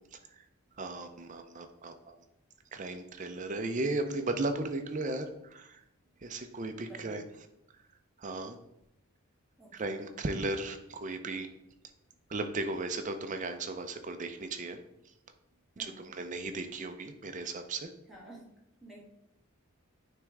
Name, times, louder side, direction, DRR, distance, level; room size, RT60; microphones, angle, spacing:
voice 1, 0.8-2.1 2.7-5.7 6.2-7.2 8.2-8.6 9.7-11.5 12.3-14.8 15.8-17.9, right 2 dB, 35° right, 7 dB, 0.6 m, -36 dB
voice 2, 6.6-7.3 9.6-10.2 15.8-16.1 18.1-18.5 18.8-19.0, right 1 dB, ahead, -6 dB, 1.9 m, -52 dB
9.2 x 3.6 x 3.4 m, 0.83 s
head